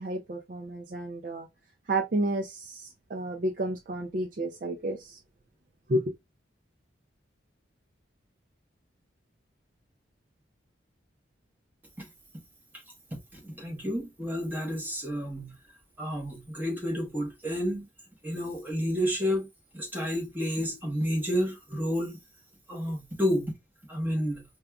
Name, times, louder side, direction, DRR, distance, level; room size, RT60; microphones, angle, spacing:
voice 1, 0.0-1.5 1.9-5.2 5.9-6.0, right 1 dB, 45° right, 0.4 m, -31 dB
voice 2, 13.1-15.5 16.0-17.9 18.2-19.5 19.7-22.2 22.7-23.5 23.9-24.4, equal, 10° right, 1.0 m, -30 dB
4.9 x 2.3 x 2.3 m
head